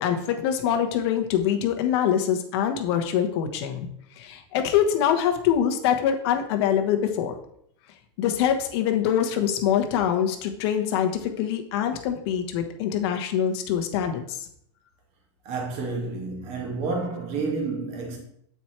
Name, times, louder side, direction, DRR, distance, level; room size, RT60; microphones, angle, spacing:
voice 1, 0.0-3.9 4.2-7.3 8.2-14.4, left 9 dB, 55° left, 1.1 m, -24 dB
voice 2, 15.4-18.2, right 3 dB, 40° right, 2.0 m, -30 dB
8.1 x 4.6 x 4.4 m
supercardioid pair, 150°, 16 cm